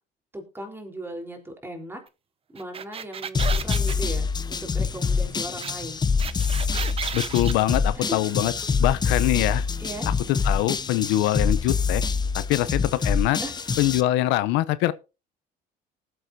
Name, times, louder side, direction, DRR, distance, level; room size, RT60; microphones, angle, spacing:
voice 1, 0.3-2.0 2.5-6.0 8.0-8.2 9.8-10.1 13.4-13.6, right 1 dB, 10° right, 3.9 m, -37 dB
sound 1, 2.6-4.0 5.6-5.7 6.0-7.8, right 7 dB, 30° right, 0.8 m, -33 dB
sound 2, 3.3-14.0, left 5 dB, 25° left, 0.7 m, -25 dB
voice 2, 7.1-8.5 8.8-9.7 10.3-12.0 12.3-13.4 13.8-14.9, left 15 dB, 85° left, 0.7 m, -23 dB
19.5 x 8.1 x 2.8 m
cardioid pair, 110°, 18 cm